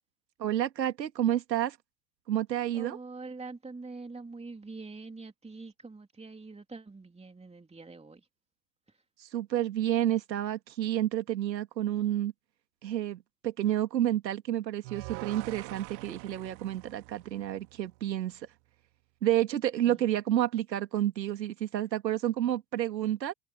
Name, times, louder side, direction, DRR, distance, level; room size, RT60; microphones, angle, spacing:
voice 1, 0.4-1.8 2.3-3.0 9.2-12.3 12.8-18.5 19.2-23.3, right 12 dB, 80° right, 2.5 m, -30 dB
voice 2, 2.7-8.3 8.9-9.0 19.8-20.1, right 3 dB, 10° right, 3.2 m, -45 dB
sound 1, 14.8-18.0, right 29 dB, 60° right, 2.6 m, -44 dB
hypercardioid pair, 75°, 50 cm